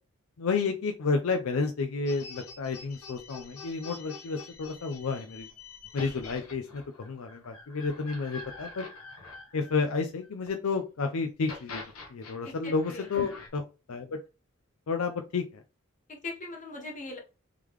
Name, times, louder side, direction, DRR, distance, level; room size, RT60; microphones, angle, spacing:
voice 1, 0.4-5.5 5.9-8.8 9.5-11.8 12.1-13.6 13.9-14.2 14.9-15.6, left 4 dB, 70° left, 5 dB, 0.5 m, -31 dB
sound 1, 2.1-10.5 11.3-13.5, left 3 dB, 90° left, 1.1 m, -46 dB
voice 2, 12.4-13.1 16.1-17.2, left 2 dB, 35° left, 1 dB, 1.2 m, -40 dB
3.6 x 3.3 x 3.1 m, 0.30 s
head